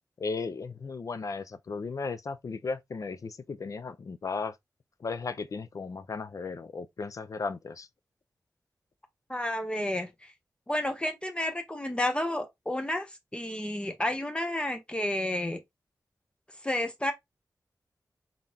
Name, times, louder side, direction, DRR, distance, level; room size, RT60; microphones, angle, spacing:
voice 1, 0.2-4.6 5.0-7.9, left 4 dB, 55° left, 0.4 m, -35 dB
voice 2, 9.3-10.3 10.7-15.6 16.6-17.1, left 1 dB, 15° left, 0.6 m, -31 dB
3.7 x 3.6 x 2.7 m
wide cardioid pair, 90°, 7 cm